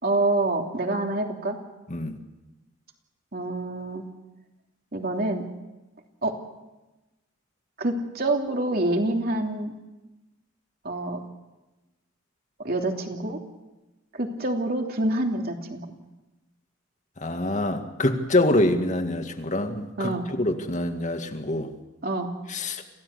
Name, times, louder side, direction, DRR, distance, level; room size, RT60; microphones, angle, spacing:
voice 1, 0.0-1.6 3.3-4.0 4.9-5.4 6.2-6.4 7.8-9.7 10.8-11.2 12.6-13.4 14.1-15.9 20.0-20.2 22.0-22.3, right 2 dB, 50° right, 2 dB, 3.0 m, -26 dB
voice 2, 17.2-21.7 22.5-22.8, left 1 dB, 40° left, 6 dB, 2.0 m, -25 dB
27.0 x 16.5 x 8.3 m, 1.1 s
head